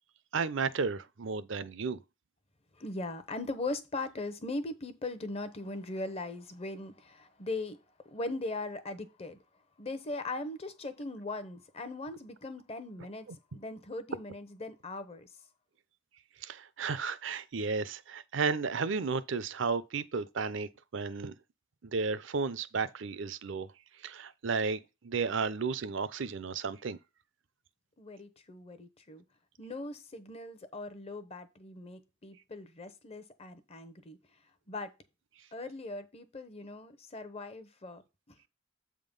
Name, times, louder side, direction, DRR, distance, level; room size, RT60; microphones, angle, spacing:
voice 1, 0.3-2.0 16.4-21.3 21.8-23.7 24.0-27.0, right 4 dB, 65° right, 0.6 m, -33 dB
voice 2, 2.8-9.4 9.8-13.3 13.5-15.3 28.0-29.2 29.6-34.2 34.7-34.9 35.5-38.3, left 2 dB, 30° left, 0.8 m, -40 dB
7.7 x 3.7 x 5.3 m
head